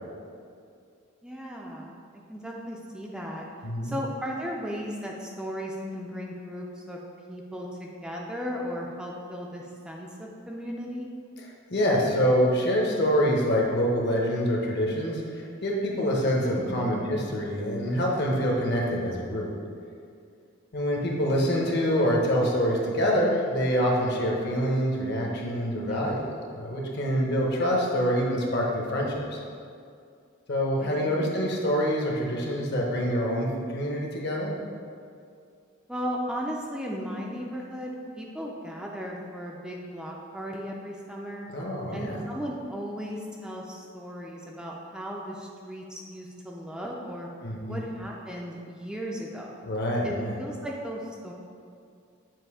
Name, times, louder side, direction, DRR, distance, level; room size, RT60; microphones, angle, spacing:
voice 1, 1.2-3.5 3.8-7.0 7.3-11.1 16.6-16.8 25.8-26.1 30.8-30.9 31.2-31.3 35.9-41.5 41.9-47.3 47.7-49.6 50.0-51.3, equal, 5° right, -2 dB, 0.4 m, -36 dB
voice 2, 3.6-3.9 11.7-19.5 20.7-26.3 26.5-29.4 30.5-34.5 41.5-42.2 47.4-47.8 49.6-50.4, equal, 55° left, -1 dB, 0.9 m, -26 dB
7.5 x 2.7 x 4.8 m, 2.3 s
head